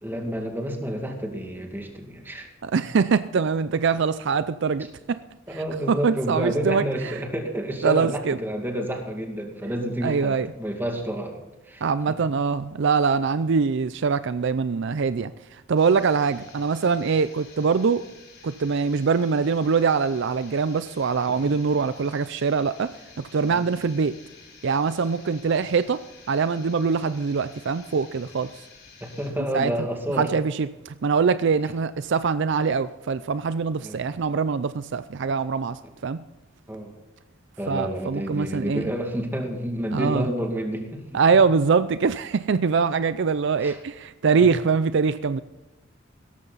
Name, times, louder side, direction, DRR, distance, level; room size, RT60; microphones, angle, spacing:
voice 1, 0.0-2.5 5.5-11.4 11.7-12.2 21.3-21.6 23.5-23.6 29.0-30.3 33.8-34.0 35.8-35.9 36.7-36.9 37.6-41.2 43.6-43.8 44.4-44.5, equal, 10° right, 2.2 m, -30 dB
voice 2, 2.6-5.2 5.5-5.6 5.9-7.2 7.8-8.4 10.0-10.5 11.8-18.0 18.4-24.2 24.6-26.0 26.3-28.6 29.5-29.7 30.2-36.2 37.7-38.9 39.9-40.3 41.1-45.4, right 5 dB, 60° right, 0.4 m, -23 dB
sound 1, 15.8-29.3, left 5 dB, 55° left, 4.5 m, -50 dB
16.5 x 14.0 x 4.1 m
head